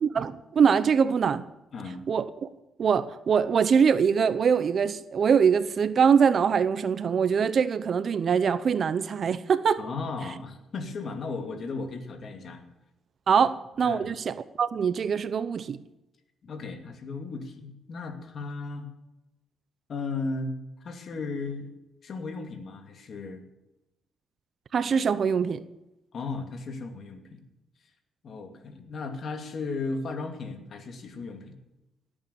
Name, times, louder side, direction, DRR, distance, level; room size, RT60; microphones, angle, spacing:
voice 1, 0.0-1.4 2.1-2.5 2.8-9.8 13.3-15.8 24.7-25.6, right 6 dB, 50° right, 0.7 m, -23 dB
voice 2, 1.7-2.1 9.8-12.6 13.8-14.1 16.4-18.9 19.9-21.7 22.0-23.4 26.1-27.4 28.2-31.5, left 3 dB, 55° left, 2.6 m, -35 dB
18.0 x 8.8 x 7.0 m
cardioid pair, 90°, 0 cm